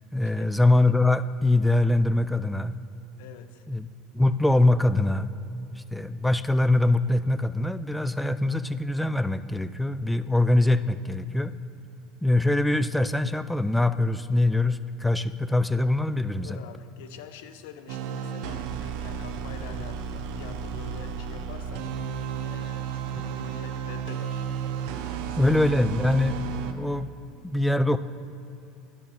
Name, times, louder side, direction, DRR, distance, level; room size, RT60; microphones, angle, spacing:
voice 1, 0.1-2.7 3.7-3.9 4.1-5.3 5.7-11.5 12.2-16.6 25.4-27.1 27.4-28.0, left 2 dB, 5° left, 13 dB, 0.4 m, -23 dB
voice 2, 3.2-3.7 16.4-21.9 22.4-24.5 24.9-25.5, left 8 dB, 75° left, 9 dB, 0.7 m, -45 dB
sound 1, 17.9-26.7, right 7 dB, 70° right, 0.8 m, -33 dB
11.0 x 5.8 x 7.1 m, 2.8 s
hypercardioid pair, 95°, 0 cm